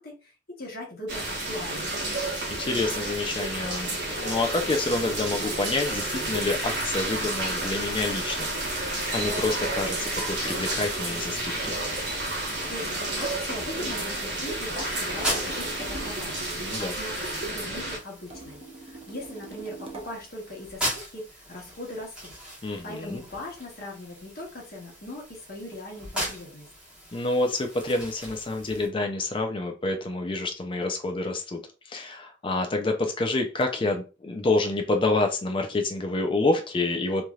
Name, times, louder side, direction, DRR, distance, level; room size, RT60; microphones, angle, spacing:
voice 1, 0.0-1.9 12.7-15.3 15.6-17.2 17.5-22.3 22.6-26.7, left 1 dB, 60° left, -2 dB, 1.1 m, -40 dB
sound 1, 1.1-18.0, right 2 dB, 75° right, 1.2 m, -31 dB
voice 2, 2.5-11.8 16.6-16.9 22.6-23.2 27.1-31.6 31.9-37.3, left 2 dB, 30° left, 4 dB, 0.4 m, -28 dB
sound 2, 10.5-28.9, equal, 5° right, 1.2 m, -39 dB
sound 3, 15.1-16.3 18.3-20.2, right 3 dB, 35° right, 0.7 m, -43 dB
3.1 x 2.7 x 2.3 m, 0.31 s
head